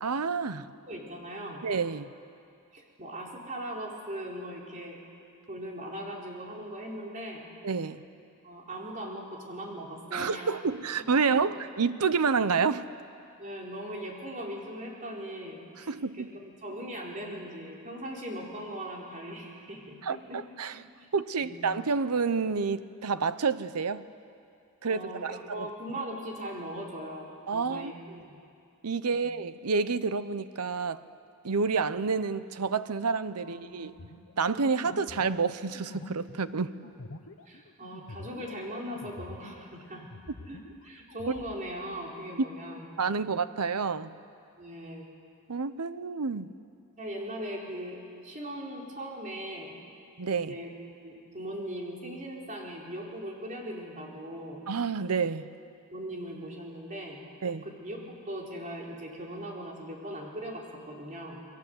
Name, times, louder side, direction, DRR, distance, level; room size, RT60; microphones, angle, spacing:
voice 1, 0.0-0.7 1.6-2.1 7.6-8.0 10.1-12.9 15.9-16.3 20.0-20.8 21.1-24.0 24.8-25.7 27.5-27.9 28.8-31.0 31.4-33.9 34.4-36.7 42.4-42.5 43.0-44.2 45.5-46.5 50.2-50.5 54.7-55.5 57.4-57.7, right 5 dB, 90° right, 14 dB, 0.8 m, -29 dB
voice 2, 0.8-1.6 2.7-5.0 5.5-7.5 8.4-10.5 11.0-11.4 13.4-20.4 20.7-21.1 21.3-21.6 24.9-28.4 29.1-29.2 33.3-33.9 36.5-36.9 37.5-40.0 40.5-42.8 43.2-43.3 44.5-45.1 47.0-49.8 50.4-50.7 51.0-54.6 55.9-57.2 57.6-61.4, equal, 35° right, -2 dB, 4.3 m, -40 dB
sound 1, 34.0-39.7 40.0-41.6, left 2 dB, 65° left, 1.2 m, -47 dB
29.0 x 21.5 x 8.0 m, 2.5 s
head